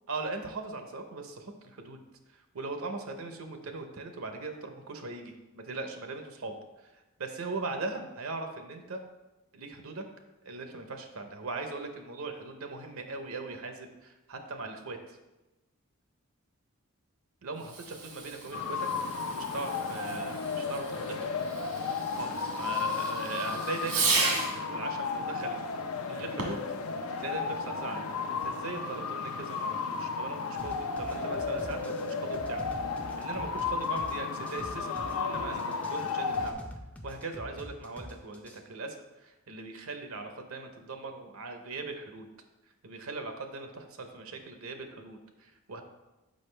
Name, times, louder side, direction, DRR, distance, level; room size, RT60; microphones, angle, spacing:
voice 1, 0.1-2.0 2.3-6.5 7.2-9.0 9.5-10.0 10.4-15.2 17.4-18.9 19.3-21.4 22.1-26.6 27.1-28.0 28.4-32.7 33.2-36.7 37.0-42.3 42.8-45.8, right 3 dB, 70° right, 6 dB, 0.7 m, -39 dB
Fireworks, 17.6-24.7 26.3-26.8, right 3 dB, 85° right, 1.5 m, -35 dB
sound 1, 18.5-36.5, left 5 dB, 80° left, 0.5 m, -34 dB
sound 2, 30.6-38.6, equal, 5° left, 0.5 m, -45 dB
6.4 x 5.2 x 3.2 m, 1.0 s
head